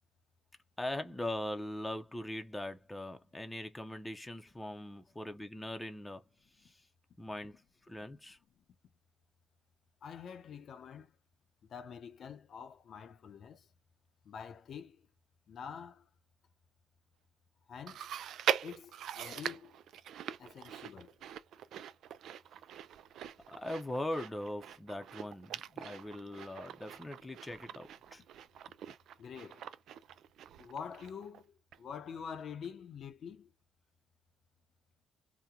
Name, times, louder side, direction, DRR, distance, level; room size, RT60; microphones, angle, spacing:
voice 1, 0.8-6.2 6.6-6.8 7.2-8.4 23.5-28.2, left 1 dB, 10° left, 0.6 m, -41 dB
voice 2, 10.0-11.1 11.7-13.7 14.2-15.0 15.5-16.1 17.7-18.1 18.6-19.8 20.4-21.1 29.2-29.7 30.6-33.5, left 7 dB, 60° left, 0.5 m, -46 dB
Chewing mastication, 17.9-31.4 31.7-31.8 32.6-32.7, right 9 dB, 75° right, 0.3 m, -42 dB
2.8 x 2.1 x 3.6 m
cardioid pair, 90°, 0 cm